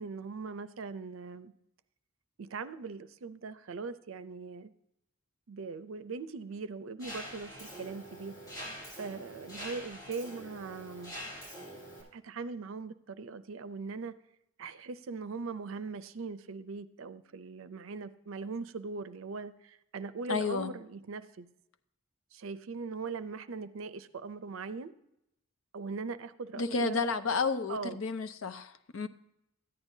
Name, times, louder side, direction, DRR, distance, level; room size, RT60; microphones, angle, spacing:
voice 1, 0.0-1.5 2.4-4.7 5.5-8.4 9.0-11.2 12.1-14.1 14.6-21.5 22.3-24.9 25.7-27.0 27.7-28.0, right 4 dB, 75° right, 0.5 m, -40 dB
Mechanisms, 7.0-12.0, equal, 20° left, 3.6 m, -45 dB
voice 2, 20.3-20.7 26.6-29.1, left 4 dB, 70° left, 0.6 m, -31 dB
13.5 x 9.8 x 2.7 m
head